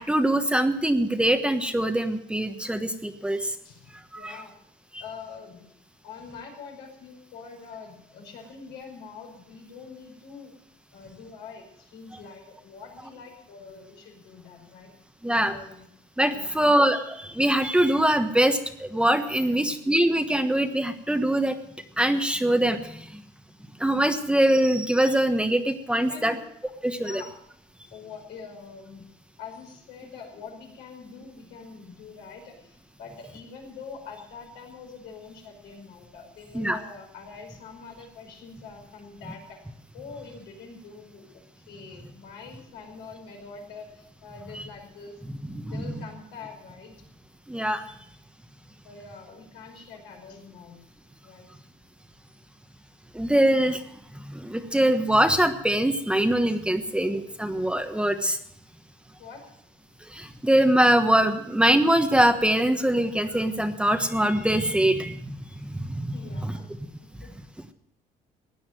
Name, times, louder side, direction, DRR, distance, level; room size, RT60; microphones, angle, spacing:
voice 1, 0.0-3.5 4.1-4.4 4.9-5.0 15.2-15.6 16.2-21.6 22.0-23.2 23.8-26.3 26.8-27.2 36.5-36.8 45.4-46.0 47.5-47.8 53.1-53.8 54.3-58.4 60.0-65.3 65.6-66.5, right 1 dB, 5° right, 7 dB, 1.2 m, -23 dB
voice 2, 3.2-4.5 5.0-5.7 6.0-10.5 10.9-14.9 15.5-15.9 16.3-16.8 19.3-19.8 25.9-26.4 27.0-27.3 27.8-29.1 29.4-39.6 39.9-45.2 45.7-46.9 48.8-50.8 51.2-51.5 59.2-59.4 66.1-66.7 67.2-67.3, left 5 dB, 85° left, 1 dB, 5.4 m, -44 dB
16.5 x 9.9 x 7.6 m, 0.72 s
cardioid pair, 110°, 17 cm